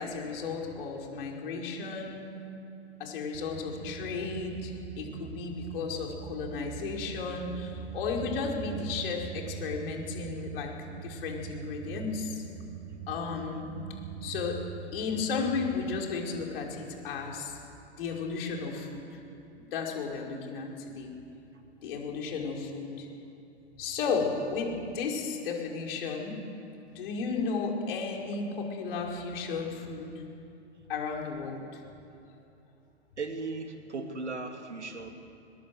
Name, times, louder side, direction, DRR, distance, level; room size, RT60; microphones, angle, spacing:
voice 1, 0.0-2.3 3.0-12.4 13.1-13.7 14.2-14.6 14.9-17.6 17.9-19.2 19.7-21.1 21.8-23.1 23.8-26.4 26.9-30.2 30.9-31.8, left 4 dB, 55° left, 0 dB, 5.5 m, -34 dB
sound 1, 3.3-16.0, right 8 dB, 40° right, 1.6 m, -42 dB
voice 2, 33.2-35.1, right 3 dB, 80° right, 5 dB, 2.6 m, -37 dB
21.5 x 21.0 x 8.1 m, 2.8 s
figure-of-eight pair, 105°, 34 cm